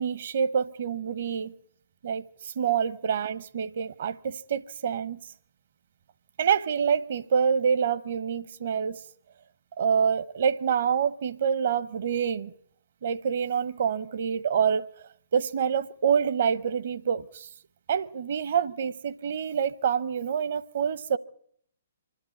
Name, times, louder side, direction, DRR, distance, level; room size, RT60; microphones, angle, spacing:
voice 1, 0.0-1.5 2.0-5.2 6.4-9.0 9.8-12.5 13.0-17.5 17.9-21.2, right 7 dB, 55° right, 0.9 m, -27 dB
25.0 x 12.0 x 9.7 m
figure-of-eight pair, 125°, 0 cm